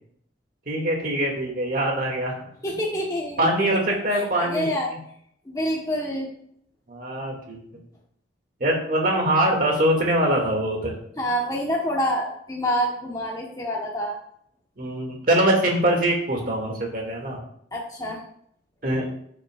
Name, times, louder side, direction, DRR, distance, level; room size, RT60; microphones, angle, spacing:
voice 1, 0.7-2.3 3.4-4.7 6.9-7.6 8.6-10.9 14.8-17.4 18.8-19.1, right 1 dB, 50° right, 0 dB, 2.3 m, -23 dB
voice 2, 2.6-3.5 4.1-4.9 5.5-6.3 11.2-14.2 17.7-18.2, equal, 20° left, -3 dB, 1.2 m, -27 dB
13.0 x 6.8 x 2.4 m, 0.68 s
head